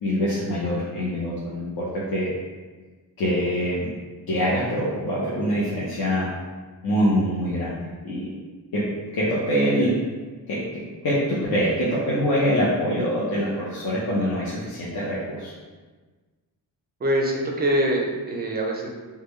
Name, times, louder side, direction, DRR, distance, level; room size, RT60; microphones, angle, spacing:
voice 1, 0.0-1.8 2.1-2.3 3.2-3.9 4.3-6.3 6.8-7.8 8.0-8.3 8.7-8.8 9.1-10.0 10.5-15.5, equal, 65° left, -8 dB, 0.7 m, -24 dB
voice 2, 17.0-18.9, right 1 dB, 25° right, 0 dB, 0.4 m, -24 dB
3.6 x 2.2 x 3.1 m, 1.3 s
wide cardioid pair, 160°, 40 cm